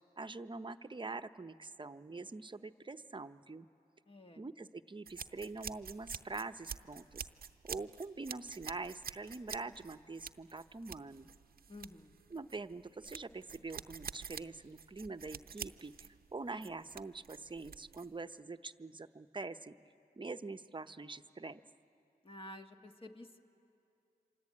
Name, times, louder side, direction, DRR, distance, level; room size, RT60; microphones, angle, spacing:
voice 1, 0.2-3.7 4.4-7.2 7.6-11.3 12.3-15.9 16.3-19.7 20.2-21.6, right 3 dB, 30° right, 9 dB, 0.9 m, -44 dB
voice 2, 4.1-4.5 11.7-12.2 22.2-23.4, left 1 dB, 35° left, 4 dB, 1.7 m, -51 dB
sound 1, 5.1-18.2, right 7 dB, 65° right, 0.7 m, -48 dB
27.0 x 25.5 x 8.7 m, 2.6 s
cardioid pair, 60°, 16 cm